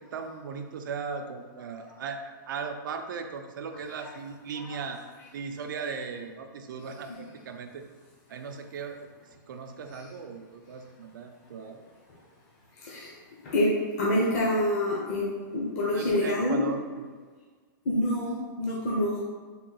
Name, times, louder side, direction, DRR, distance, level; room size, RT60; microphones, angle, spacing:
voice 1, 0.0-5.0 5.3-7.9 8.3-9.1 9.5-11.8 15.9-17.1, right 5 dB, 75° right, 6 dB, 0.4 m, -37 dB
voice 2, 12.8-13.1 13.4-16.6 17.9-19.2, left 1 dB, 45° left, -5 dB, 0.6 m, -27 dB
3.6 x 2.3 x 3.8 m, 1.5 s
supercardioid pair, 170°, 11 cm